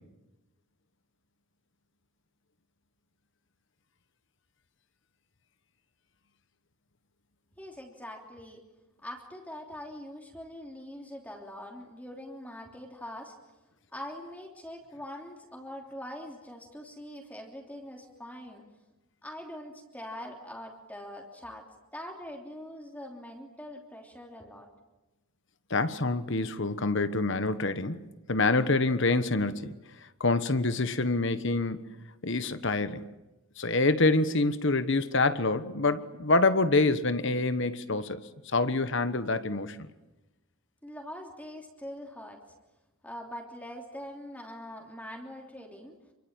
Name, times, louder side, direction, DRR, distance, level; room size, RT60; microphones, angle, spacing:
voice 1, 7.6-8.6 9.0-13.3 13.9-18.6 19.2-21.7 21.9-24.7 40.8-42.4 43.0-45.9, left 1 dB, 5° left, 3.1 m, -43 dB
voice 2, 25.7-28.0 28.3-29.7 30.2-31.8 32.2-33.0 33.6-38.2 38.4-39.9, left 3 dB, 55° left, 1.3 m, -26 dB
28.0 x 23.5 x 8.9 m
head